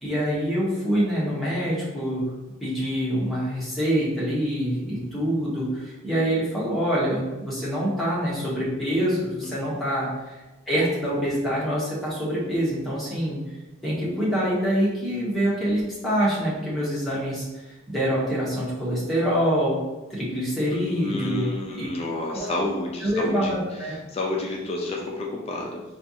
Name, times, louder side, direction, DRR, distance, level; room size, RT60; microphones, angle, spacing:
voice 1, 0.0-2.3 2.6-13.4 13.8-19.8 20.1-21.9 22.3-22.5 23.0-23.9, equal, ahead, -8 dB, 1.0 m, -25 dB
voice 2, 9.4-9.8 20.7-23.5 23.8-25.8, left 2 dB, 30° left, -1 dB, 0.4 m, -30 dB
4.3 x 2.4 x 2.7 m, 1.1 s
head